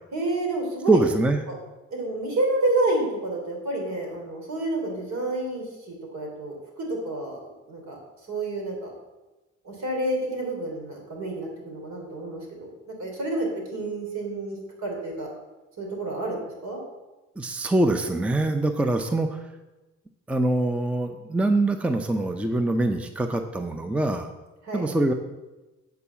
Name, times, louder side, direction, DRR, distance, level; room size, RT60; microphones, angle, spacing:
voice 1, 0.1-1.1 1.5-1.6 1.9-8.0 8.3-8.9 9.6-15.3 15.8-16.8 24.6-24.9, right 2 dB, 65° right, 0 dB, 3.4 m, -29 dB
voice 2, 0.9-1.4 17.4-19.4 20.3-24.3 24.7-25.1, right 2 dB, 5° right, 7 dB, 0.6 m, -24 dB
8.6 x 4.7 x 7.2 m, 1.1 s
cardioid pair, 90°, 30 cm